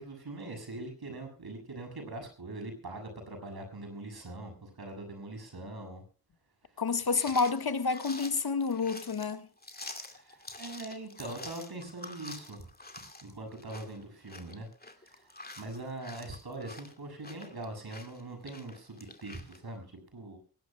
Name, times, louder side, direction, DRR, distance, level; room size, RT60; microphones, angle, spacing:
voice 1, 0.0-6.0 6.6-6.8 10.1-12.7 13.2-14.7 15.0-20.4, right 2 dB, 80° right, 7.0 m, -42 dB
voice 2, 6.8-9.5, left 4 dB, 80° left, 1.5 m, -29 dB
sound 1, 7.0-19.6, left 2 dB, 25° left, 2.5 m, -47 dB
23.5 x 19.5 x 2.2 m
wide cardioid pair, 85°, 37 cm